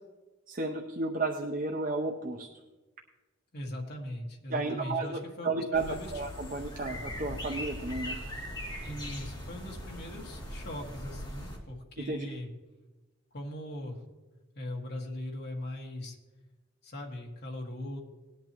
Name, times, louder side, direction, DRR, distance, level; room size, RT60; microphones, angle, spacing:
voice 1, 0.5-2.5 4.5-5.8 6.1-8.2 12.0-12.3, right 3 dB, 40° right, 2 dB, 0.7 m, -33 dB
voice 2, 3.5-6.3 8.8-12.5 13.3-14.0 14.5-16.2 16.8-18.0, left 1 dB, 50° left, 0 dB, 1.7 m, -40 dB
sound 1, 5.7-11.6, equal, 20° left, 2.4 m, -40 dB
18.5 x 10.5 x 3.0 m, 1.2 s
head